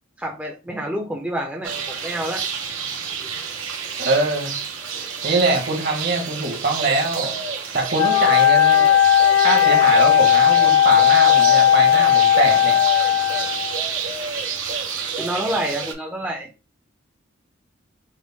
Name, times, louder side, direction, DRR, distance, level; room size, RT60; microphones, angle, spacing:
voice 1, 0.2-2.4 15.2-16.5, right 1 dB, 5° right, 0.6 m, -28 dB
sound 1, 1.6-15.9, right 6 dB, 85° right, 1.3 m, -29 dB
voice 2, 4.0-4.5 5.2-7.3 7.7-8.8 9.4-12.8, right 2 dB, 55° right, 1.4 m, -23 dB
Wind instrument woodwind instrument, 7.9-13.9, left 10 dB, 85° left, 1.2 m, -16 dB
6.4 x 2.1 x 3.6 m
head